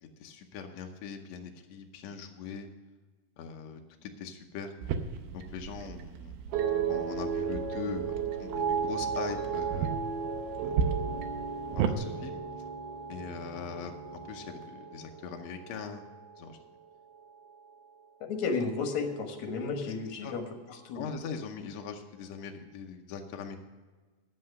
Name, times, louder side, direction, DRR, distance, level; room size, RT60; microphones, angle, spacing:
voice 1, 0.0-2.7 3.4-4.7 5.3-6.3 6.9-9.9 11.7-12.4 13.1-16.0 16.4-16.6 19.9-20.0 20.2-20.3 20.9-23.6, left 6 dB, 75° left, 3 dB, 1.6 m, -41 dB
sound 1, 4.8-12.0, right 7 dB, 85° right, 2.6 m, -36 dB
sound 2, 6.5-16.9 17.2-17.7, right 6 dB, 70° right, 2.5 m, -35 dB
voice 2, 18.2-20.4 20.7-21.0, left 4 dB, 60° left, 3 dB, 2.4 m, -33 dB
10.5 x 7.8 x 6.5 m, 1.3 s
omnidirectional pair, 4.1 m